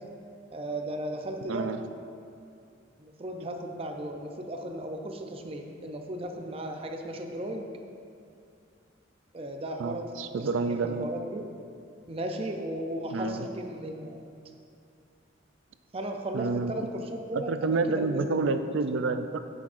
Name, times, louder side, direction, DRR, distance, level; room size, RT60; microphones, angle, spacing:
voice 1, 0.5-1.7 3.0-7.7 9.3-10.1 10.4-11.4 12.1-14.2 15.9-18.5, right 1 dB, 30° right, 3 dB, 0.5 m, -36 dB
voice 2, 1.5-1.8 9.8-11.1 13.1-13.5 16.3-16.7 17.3-19.4, right 4 dB, 80° right, 9 dB, 0.4 m, -29 dB
9.0 x 7.2 x 2.6 m, 2.5 s
head